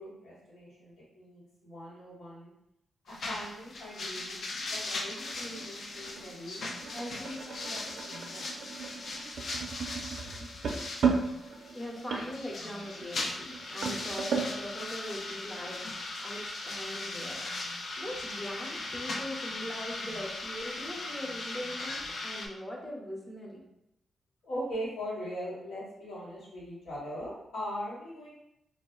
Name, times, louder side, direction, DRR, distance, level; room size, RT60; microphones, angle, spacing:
voice 1, 0.0-2.5 3.1-4.3 4.6-6.6 6.9-8.5 24.4-28.3, equal, 90° left, -8 dB, 1.3 m, -40 dB
sound 1, 3.1-22.5, left 2 dB, 55° left, 0.4 m, -39 dB
sound 2, 4.8-14.5, right 5 dB, 65° right, 0.4 m, -35 dB
voice 2, 11.7-17.4 18.0-23.7, equal, 15° left, -3 dB, 0.6 m, -41 dB
2.4 x 2.0 x 3.6 m, 0.84 s
wide cardioid pair, 145°, 0 cm